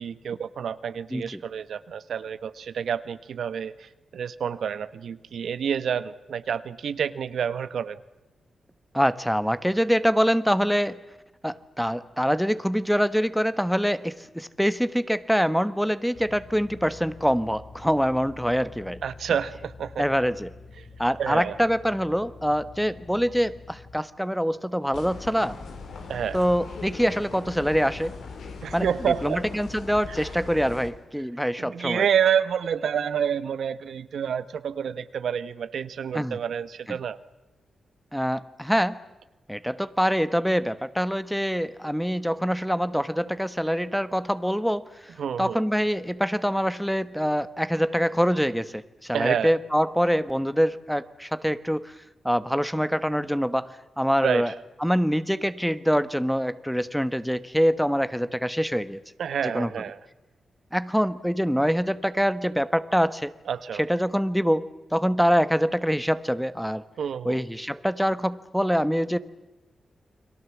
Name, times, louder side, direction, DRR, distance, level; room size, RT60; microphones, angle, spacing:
voice 1, 0.0-8.0 19.0-20.1 20.8-20.9 21.2-21.6 26.1-26.4 28.6-29.4 31.6-37.2 45.2-45.6 49.1-49.5 54.2-54.4 59.2-60.0 63.5-63.8 67.0-67.4, right 8 dB, 80° right, 12 dB, 1.2 m, -28 dB
voice 2, 8.9-11.0 11.4-19.0 20.0-20.5 21.0-25.6 26.3-28.1 28.7-28.9 29.2-32.0 36.1-36.4 36.9-37.0 38.1-39.0 39.5-51.9 52.2-54.5 54.8-59.0 59.4-59.7 60.7-63.3 63.8-66.8 67.2-69.2, equal, ahead, 12 dB, 1.2 m, -25 dB
sound 1, 16.1-24.0, left 4 dB, 60° left, 1.9 m, -47 dB
sound 2, 24.9-30.9, left 4 dB, 85° left, 3.8 m, -39 dB
30.0 x 22.5 x 7.3 m, 1.0 s
cardioid pair, 80°, 0 cm